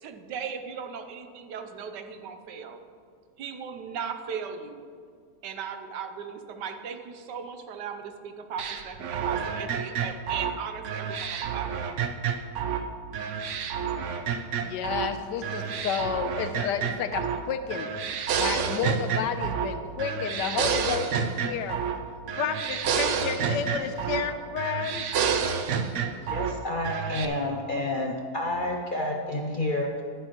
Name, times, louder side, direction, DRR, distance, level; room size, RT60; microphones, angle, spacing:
voice 1, 0.0-2.8 3.4-4.8 5.4-12.0, right 7 dB, 85° right, 7 dB, 1.4 m, -37 dB
sound 1, 8.6-12.9 13.1-15.1 15.4-17.4 17.7-19.7 20.0-22.0 22.3-24.3 24.6-26.5 26.8-27.3, right 7 dB, 65° right, 0.8 m, -29 dB
voice 2, 14.6-17.9 18.4-21.8 22.3-25.0, left 8 dB, 90° left, 9 dB, 1.3 m, -31 dB
voice 3, 26.2-30.0, left 1 dB, 60° left, 0 dB, 0.5 m, -29 dB
11.5 x 11.0 x 3.0 m, 2.1 s
omnidirectional pair, 1.8 m